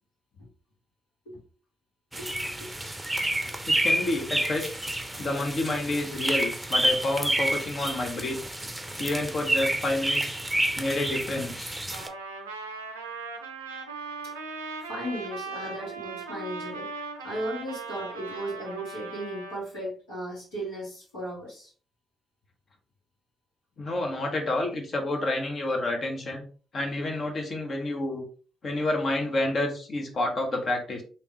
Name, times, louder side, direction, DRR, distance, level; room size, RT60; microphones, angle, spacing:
sound 1, 2.1-12.1, right 1 dB, 10° right, 0.6 m, -29 dB
voice 1, 2.2-2.7 14.2-14.3 14.9-16.9 17.2-21.7, right 1 dB, 75° left, -7 dB, 1.9 m, -36 dB
voice 2, 3.7-4.7 5.2-8.4 9.0-10.3 10.8-11.7 18.3-18.4 23.8-26.4 26.7-28.2 28.6-31.0, left 2 dB, 50° left, 3 dB, 1.0 m, -29 dB
Trumpet, 11.9-19.6, right 4 dB, 85° right, 0.4 m, -38 dB
3.4 x 2.9 x 2.9 m, 0.39 s
hypercardioid pair, 40°, 0 cm